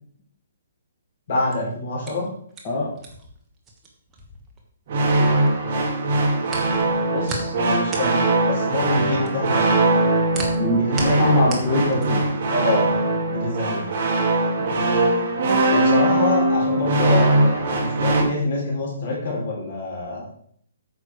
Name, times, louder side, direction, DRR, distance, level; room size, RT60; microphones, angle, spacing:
voice 1, 1.3-2.3 7.1-10.0 10.7-11.3 12.5-12.9 13.2-13.9 15.7-20.3, left 2 dB, 45° left, -3 dB, 4.5 m, -26 dB
sound 1, 1.3-5.5 5.8-12.4, right 2 dB, 10° right, 1.3 m, -36 dB
sound 2, 4.9-18.2, right 2 dB, 35° right, 2.0 m, -21 dB
voice 2, 10.6-12.2 14.6-14.9, left 1 dB, 20° left, -7 dB, 1.9 m, -23 dB
9.1 x 6.4 x 4.9 m, 0.64 s
hypercardioid pair, 170°, 0 cm